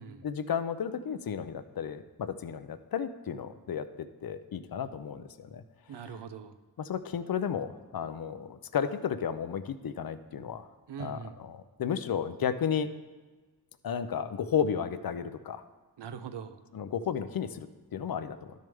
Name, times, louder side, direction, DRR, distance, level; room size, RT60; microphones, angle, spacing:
voice 1, 0.2-5.6 6.0-6.1 6.8-10.7 11.0-12.9 13.8-15.6 16.7-18.5, left 7 dB, 60° left, 12 dB, 0.6 m, -33 dB
voice 2, 5.9-6.6 10.9-11.4 16.0-16.6, right 7 dB, 85° right, 11 dB, 0.6 m, -41 dB
12.0 x 6.5 x 3.5 m, 1.3 s
wide cardioid pair, 80°, 41 cm